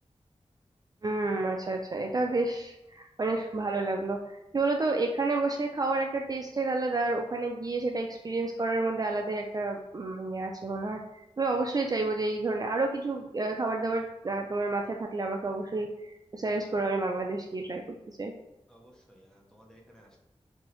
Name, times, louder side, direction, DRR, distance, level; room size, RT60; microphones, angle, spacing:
voice 1, 1.0-11.0 11.4-17.8 18.1-18.3, right 3 dB, 35° right, 2 dB, 0.3 m, -30 dB
voice 2, 18.7-20.2, equal, 5° left, -1 dB, 0.9 m, -57 dB
3.4 x 3.3 x 3.0 m, 0.94 s
wide cardioid pair, 90°, 11 cm